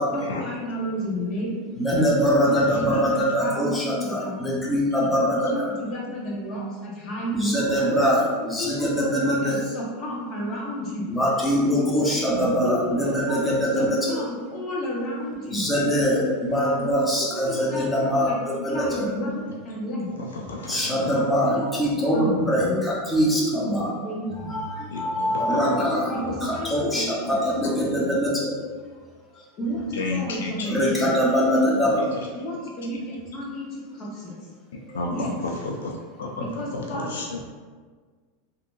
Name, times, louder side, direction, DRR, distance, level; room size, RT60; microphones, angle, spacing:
voice 1, 0.1-1.6 2.5-4.6 5.4-7.6 8.6-11.1 12.6-15.7 17.2-18.4 18.7-20.1 21.4-21.8 22.1-22.9 23.3-24.5 26.1-27.5 29.3-31.2 32.3-34.4 35.1-35.3 36.6-37.1, equal, 40° left, -4 dB, 1.1 m, -32 dB
voice 2, 1.8-5.5 7.3-9.5 11.1-14.2 15.5-18.3 18.6-19.1 20.7-23.9 24.5-26.2 26.7-28.5 30.7-32.0, equal, 10° left, -6 dB, 0.9 m, -23 dB
voice 3, 20.2-21.3 24.9-26.1 27.6-27.7 29.9-30.9 32.0-32.3 34.9-37.4, left 3 dB, 90° left, 0 dB, 0.4 m, -32 dB
3.4 x 2.8 x 2.6 m, 1.5 s
hypercardioid pair, 115°, 0 cm